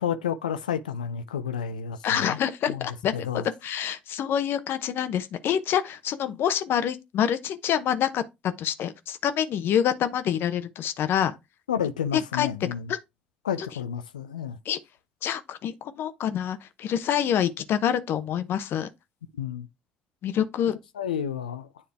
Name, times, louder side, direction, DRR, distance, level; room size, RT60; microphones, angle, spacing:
voice 1, 0.0-2.4 2.7-2.9 3.1-3.4 11.7-12.9 13.4-14.6 19.4-19.7 21.0-21.7, left 8 dB, 90° left, 0.4 m, -30 dB
voice 2, 2.0-11.3 12.1-12.5 12.9-13.0 13.6-13.7 14.7-14.8 15.2-18.9 20.2-20.7, left 9 dB, 60° left, 0.8 m, -26 dB
9.7 x 3.3 x 3.3 m
hypercardioid pair, 55°, 4 cm